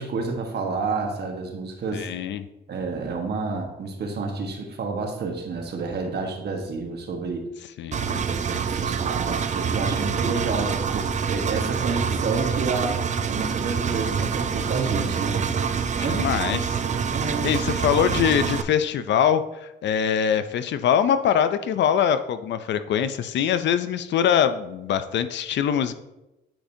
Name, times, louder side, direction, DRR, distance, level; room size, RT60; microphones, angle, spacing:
voice 1, 0.0-2.1 2.7-7.5 8.3-13.0 13.3-15.4 16.0-16.2 17.1-17.6, right 4 dB, 55° right, 3 dB, 1.3 m, -29 dB
voice 2, 1.9-2.5 7.8-8.2 16.0-16.8 17.4-25.9, left 8 dB, 65° left, 12 dB, 0.5 m, -23 dB
Engine, 7.9-18.6, right 6 dB, 35° right, 0.5 m, -26 dB
8.9 x 5.0 x 2.7 m, 0.95 s
cardioid pair, 90°, 20 cm